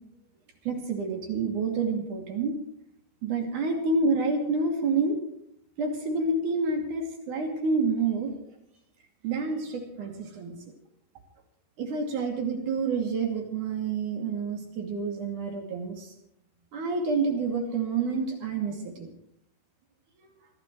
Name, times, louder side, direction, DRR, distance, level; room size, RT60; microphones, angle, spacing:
voice 1, 0.7-2.6 3.2-5.2 5.8-8.4 9.2-10.6 11.8-16.1 16.7-19.1, right 4 dB, 75° right, 2 dB, 4.1 m, -28 dB
24.5 x 16.0 x 3.2 m, 0.75 s
omnidirectional pair, 3.7 m